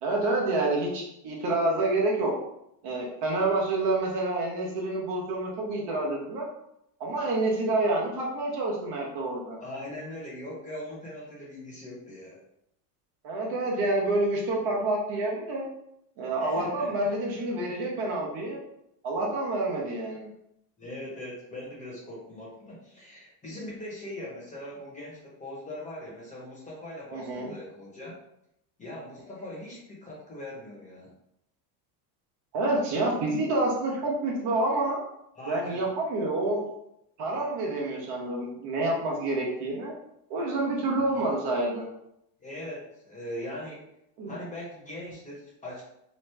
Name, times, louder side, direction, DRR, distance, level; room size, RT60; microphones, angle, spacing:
voice 1, 0.0-2.3 2.8-6.5 7.0-9.6 13.2-15.7 16.2-18.6 19.0-20.3 27.1-27.5 32.5-35.0 35.5-36.6 37.2-39.9 40.3-41.9 44.2-44.4, right 2 dB, 55° right, -2 dB, 1.0 m, -28 dB
voice 2, 9.6-12.4 16.4-17.1 20.8-28.1 28.8-31.1 35.4-35.8 40.8-41.3 42.4-43.8 44.3-45.8, left 1 dB, 15° left, -6 dB, 0.9 m, -41 dB
3.1 x 2.0 x 3.3 m, 0.81 s
supercardioid pair, 125°, 49 cm